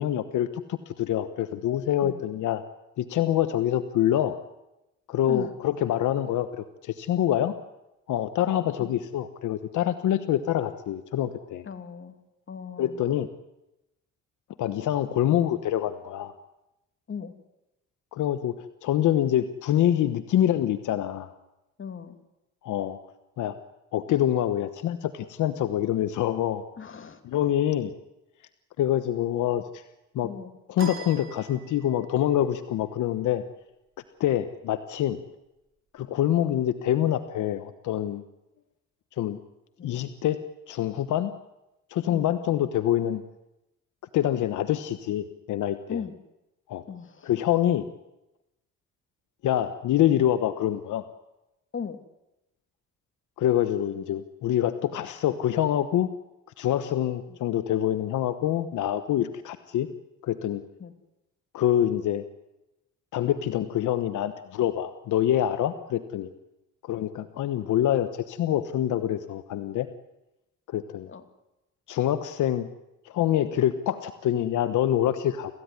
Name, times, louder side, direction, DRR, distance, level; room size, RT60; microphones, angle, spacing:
voice 1, 0.0-2.6 3.0-4.4 5.1-7.5 8.1-11.6 12.8-13.3 14.6-16.3 18.1-21.3 22.6-23.0 23.4-23.5 23.9-26.7 27.2-27.9 28.8-29.8 30.1-30.3 30.7-33.4 34.2-35.2 35.9-38.2 39.2-39.4 39.8-40.4 40.7-41.3 41.9-43.2 44.1-46.0 46.7-46.8 47.2-47.9 49.4-51.0 53.4-56.1 56.6-59.9 60.2-60.6 61.5-62.2 63.1-66.3 66.8-69.9 70.7-71.1 71.9-72.7 73.0-75.5, left 11 dB, 80° left, 10 dB, 1.2 m, -26 dB
voice 2, 11.6-12.2 12.5-13.0 17.1-17.3 21.8-22.2 26.8-27.2 30.2-30.5 39.8-40.0 42.1-42.3 45.9-46.1 46.9-47.3 51.7-52.0 57.3-57.4 60.8-60.9 71.1-71.2, left 6 dB, 40° left, 7 dB, 2.6 m, -38 dB
sound 1, 30.8-32.1, right 5 dB, 45° right, 4.3 m, -40 dB
27.0 x 15.5 x 9.7 m, 0.95 s
cardioid pair, 90°, 30 cm